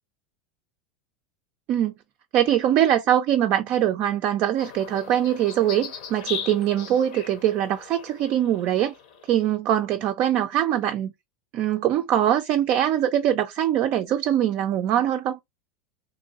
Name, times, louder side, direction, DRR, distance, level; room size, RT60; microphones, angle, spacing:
voice 1, 2.3-8.9 9.3-11.1 11.5-15.4, right 11 dB, 45° right, 0.3 m, -22 dB
sound 1, 4.6-9.5, left 7 dB, 75° left, 0.9 m, -39 dB
2.8 x 2.6 x 2.7 m
supercardioid pair, 125°, 4 cm